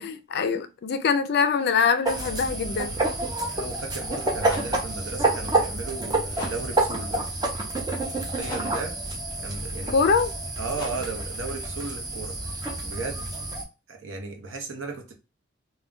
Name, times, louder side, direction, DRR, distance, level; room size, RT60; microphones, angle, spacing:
voice 1, 0.0-2.9 9.9-10.3, left 5 dB, 55° left, 0.4 m, -23 dB
sound 1, 2.0-13.6, right 2 dB, 20° right, 0.6 m, -29 dB
voice 2, 3.5-7.3 8.1-9.0 9.4-10.0 10.6-12.3 12.8-13.3 13.9-15.1, right 3 dB, 85° right, 0.7 m, -35 dB
sound 2, 4.4-13.2, left 1 dB, 20° left, 1.0 m, -43 dB
2.2 x 2.2 x 3.5 m
head